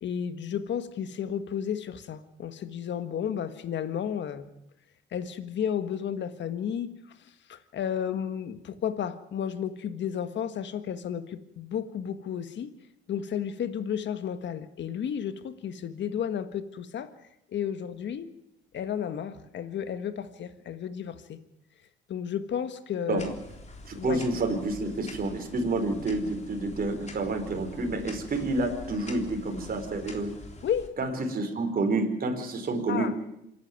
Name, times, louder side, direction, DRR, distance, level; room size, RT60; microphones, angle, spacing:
voice 1, 0.0-4.5 5.1-6.9 7.2-12.7 13.1-17.1 17.5-18.3 18.7-21.4 22.1-23.2 23.9-24.2 30.6-30.9 32.9-33.1, left 8 dB, 65° left, 11 dB, 1.7 m, -32 dB
sound 1, 23.2-30.9, left 3 dB, 35° left, 3.6 m, -45 dB
voice 2, 23.8-30.3 31.0-33.1, right 2 dB, 50° right, 4 dB, 4.5 m, -29 dB
26.5 x 11.5 x 9.5 m, 0.85 s
cardioid pair, 90°, 20 cm